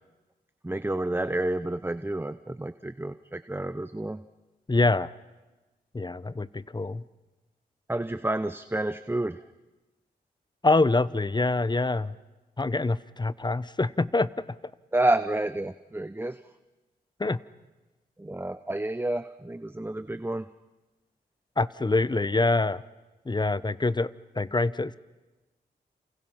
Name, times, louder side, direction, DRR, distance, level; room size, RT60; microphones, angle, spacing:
voice 1, 0.6-4.2 7.9-9.4 14.9-16.4 18.2-20.5, right 1 dB, 15° right, 12 dB, 0.8 m, -29 dB
voice 2, 4.7-5.1 5.9-7.0 10.6-12.2 12.6-14.6 17.2-17.4 21.6-22.8 23.3-25.0, left 2 dB, 25° left, 17 dB, 0.9 m, -25 dB
30.0 x 28.0 x 5.8 m, 1.1 s
cardioid pair, 50°, 17 cm